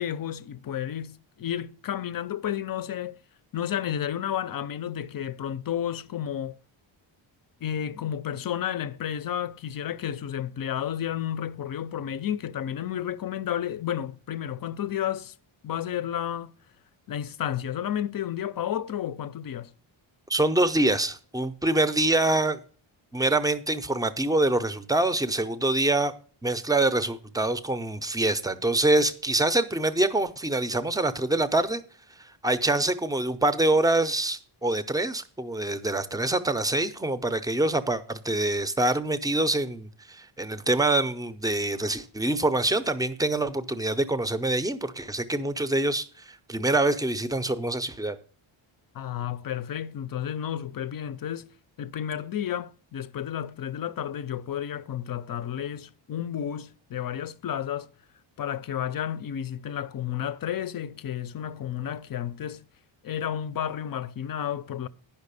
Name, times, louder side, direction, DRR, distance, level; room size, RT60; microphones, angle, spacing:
voice 1, 0.0-3.2 3.5-6.6 7.6-15.3 15.6-16.5 17.1-19.7 48.9-51.5 51.8-57.9 58.4-62.6 63.0-64.9, left 10 dB, 45° left, 0.5 m, -31 dB
voice 2, 20.3-22.6 23.1-26.1 26.4-31.8 32.4-48.2, right 2 dB, 10° right, 0.5 m, -25 dB
10.5 x 5.7 x 6.8 m
wide cardioid pair, 155°, 48 cm